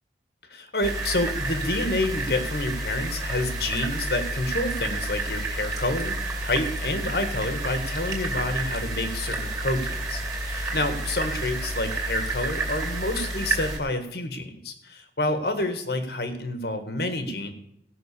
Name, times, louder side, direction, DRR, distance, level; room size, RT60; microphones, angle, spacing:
voice 1, 0.5-17.5, left 2 dB, 60° left, 8 dB, 1.6 m, -28 dB
sound 1, 0.8-13.8, right 2 dB, 20° right, 2.7 m, -30 dB
16.5 x 6.0 x 6.8 m, 0.77 s
head